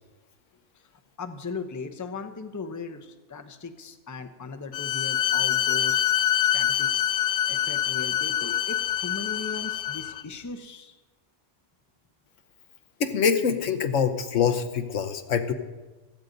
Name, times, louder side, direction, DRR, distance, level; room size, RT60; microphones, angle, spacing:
voice 1, 1.2-6.0 6.5-7.1 7.5-11.0, left 4 dB, 20° left, 7 dB, 0.7 m, -38 dB
Bowed string instrument, 4.7-10.2, left 11 dB, 55° left, 0.5 m, -25 dB
voice 2, 13.0-15.5, left 6 dB, 80° left, 7 dB, 1.3 m, -24 dB
16.0 x 14.5 x 4.0 m, 1.2 s
omnidirectional pair, 1.3 m